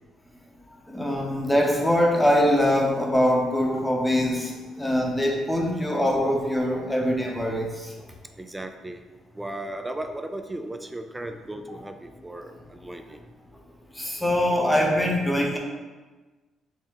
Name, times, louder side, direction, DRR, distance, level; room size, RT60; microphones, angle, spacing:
voice 1, 0.7-8.0 11.7-11.8 13.9-15.6, equal, 10° left, 0 dB, 0.7 m, -23 dB
voice 2, 8.4-9.0 9.3-13.2, right 1 dB, 15° right, 7 dB, 0.3 m, -36 dB
4.3 x 2.1 x 3.5 m, 1.3 s
cardioid pair, 80°, 0 cm